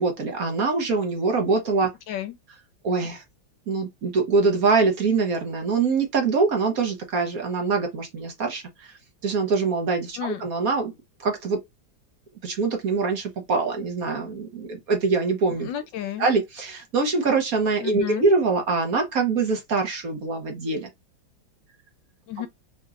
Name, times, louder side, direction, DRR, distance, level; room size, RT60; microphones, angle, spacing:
voice 1, 0.0-1.9 2.8-3.2 3.7-9.0 9.2-10.9 11.2-11.6 12.4-15.7 16.2-20.9, right 4 dB, 55° right, 1.3 m, -24 dB
voice 2, 10.2-10.5 15.6-16.3 17.8-18.3 22.3-22.5, left 11 dB, 75° left, 1.3 m, -31 dB
4.7 x 2.9 x 2.4 m
omnidirectional pair, 2.1 m